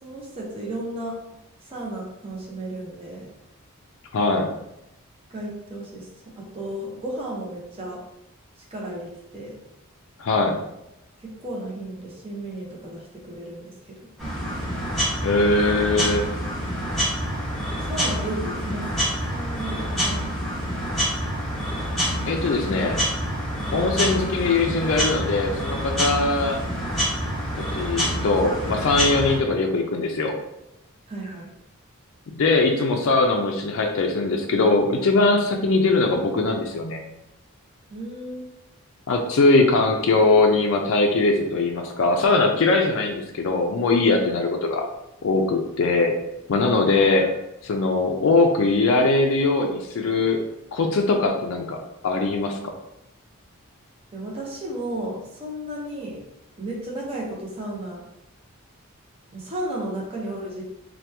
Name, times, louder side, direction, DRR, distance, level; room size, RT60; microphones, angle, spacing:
voice 1, 0.0-1.1 1.6-3.3 5.3-6.1 6.4-8.0 8.7-9.5 11.2-14.1 17.8-20.2 22.7-22.8 23.6-23.9 31.1-31.5 37.9-38.4 44.4-44.5 46.9-47.4 54.1-56.2 56.6-58.0 59.3-60.7, right 1 dB, 25° right, -3 dB, 0.6 m, -34 dB
voice 2, 4.1-4.5 10.2-10.6 15.2-16.2 22.3-23.0 23.7-26.6 27.7-30.4 32.4-37.0 39.1-44.9 45.2-46.2 46.5-47.3 47.6-50.4 50.7-51.8 52.0-52.6, left 3 dB, 60° left, 2 dB, 0.3 m, -21 dB
sound 1, 14.2-29.4, equal, ahead, 0.9 m, -27 dB
2.9 x 2.2 x 3.3 m, 0.85 s
head